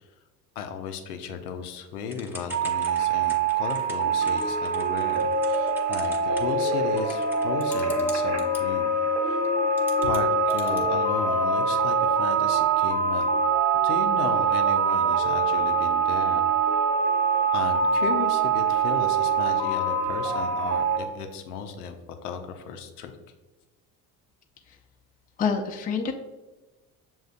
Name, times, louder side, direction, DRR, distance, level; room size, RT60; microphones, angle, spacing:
voice 1, 0.6-9.0 9.2-9.4 10.0-13.3 13.8-16.5 17.5-23.2, left 6 dB, 85° left, 6 dB, 0.6 m, -35 dB
Typing / Telephone, 2.1-8.6 9.4-9.5 9.8-10.8, equal, 5° right, 0.8 m, -43 dB
sound 1, 2.5-21.0, right 4 dB, 35° right, 0.8 m, -24 dB
voice 2, 25.4-26.1, left 5 dB, 20° left, 2 dB, 0.5 m, -26 dB
7.0 x 2.4 x 2.5 m, 1.2 s
hypercardioid pair, 60°, 45 cm